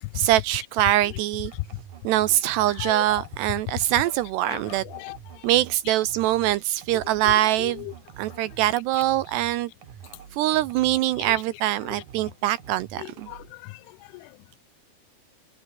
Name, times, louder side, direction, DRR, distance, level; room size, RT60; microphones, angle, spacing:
voice 1, 0.1-1.5 2.0-4.8 5.4-7.8 8.2-9.7 10.3-13.3, right 15 dB, 75° right, 2.6 m, -23 dB
sound 1, 1.5-11.5 11.8-13.6, right 9 dB, 50° right, 2.9 m, -46 dB
voice 2, 4.5-5.2 7.6-7.9 13.0-13.8 14.1-14.3, left 24 dB, 85° left, 2.9 m, -38 dB
omnidirectional pair, 5.5 m